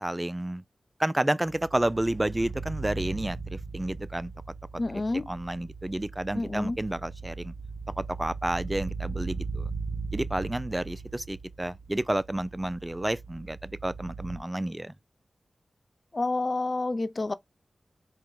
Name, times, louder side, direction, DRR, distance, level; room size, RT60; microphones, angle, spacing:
voice 1, 0.0-0.6 1.0-4.3 4.9-7.5 8.0-9.7 10.1-14.9, right 1 dB, 20° right, 0.4 m, -30 dB
sound 1, 1.5-14.4, right 4 dB, 50° right, 0.9 m, -38 dB
voice 2, 4.8-5.2 6.4-6.8 16.1-17.3, left 2 dB, 50° left, 0.5 m, -29 dB
4.6 x 2.2 x 3.8 m
cardioid pair, 40°, 0 cm